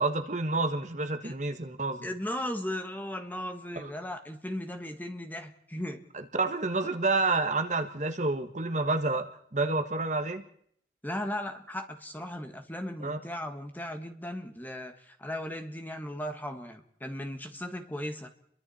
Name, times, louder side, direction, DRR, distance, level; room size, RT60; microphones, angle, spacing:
voice 1, 0.0-2.1 3.7-3.9 6.1-10.4 13.0-13.2, right 3 dB, 45° right, 7 dB, 1.4 m, -29 dB
voice 2, 2.0-6.1 11.0-18.3, left 1 dB, 10° left, 5 dB, 1.6 m, -37 dB
30.0 x 23.0 x 4.3 m, 0.68 s
head